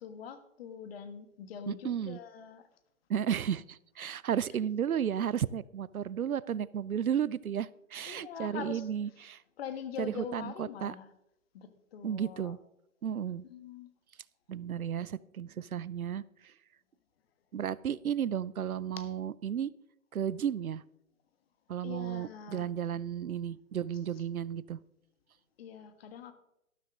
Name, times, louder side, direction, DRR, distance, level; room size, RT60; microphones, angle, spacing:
voice 1, 0.0-2.7 4.0-4.1 8.0-8.9 9.6-11.1 11.5-12.5 13.4-13.9 19.0-19.1 21.8-22.7 25.6-26.3, left 8 dB, 45° left, 10 dB, 1.5 m, -43 dB
voice 2, 1.7-2.2 3.1-9.4 10.0-10.9 12.0-12.6 13.0-13.5 14.5-16.5 17.5-19.7 20.1-20.8 21.7-24.8, right 9 dB, 85° right, 21 dB, 0.6 m, -33 dB
13.0 x 12.5 x 3.7 m, 0.83 s
figure-of-eight pair, 130°, 42 cm